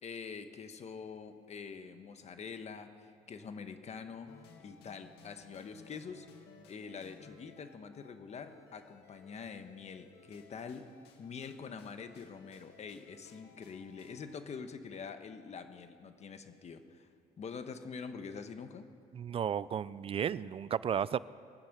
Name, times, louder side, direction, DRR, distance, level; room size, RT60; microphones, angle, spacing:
voice 1, 0.0-4.3 4.6-6.3 6.7-10.9 11.2-17.1 17.4-18.9, left 5 dB, 40° left, 8 dB, 1.3 m, -45 dB
sound 1, 4.3-14.4, left 5 dB, 80° left, 1.9 m, -59 dB
voice 2, 19.1-21.2, right 8 dB, 35° right, 18 dB, 0.4 m, -33 dB
23.5 x 9.0 x 6.7 m, 2.4 s
cardioid pair, 110°, 17 cm